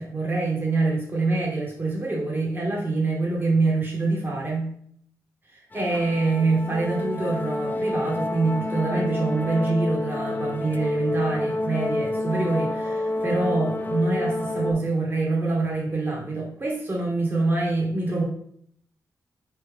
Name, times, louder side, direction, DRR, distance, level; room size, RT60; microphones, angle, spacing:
voice 1, 0.0-4.7 5.5-18.2, right 3 dB, 30° right, -3 dB, 1.5 m, -25 dB
sound 1, 5.7-14.7, left 1 dB, 25° left, 0.5 m, -29 dB
4.2 x 3.4 x 3.3 m, 0.63 s
cardioid pair, 55°, 7 cm